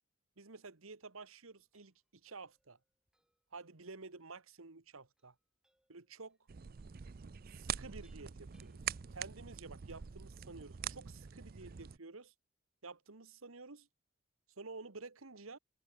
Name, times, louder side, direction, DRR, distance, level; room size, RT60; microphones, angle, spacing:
voice 1, 0.4-2.8 3.5-5.3 5.9-6.4 7.5-8.8 9.1-12.3 12.8-13.9 14.6-15.6, right 3 dB, 80° right, 1.5 m, -51 dB
sound 1, 1.5-9.6, right 1 dB, 5° right, 6.5 m, -80 dB
sound 2, 6.5-12.0, right 8 dB, 45° right, 0.5 m, -44 dB
head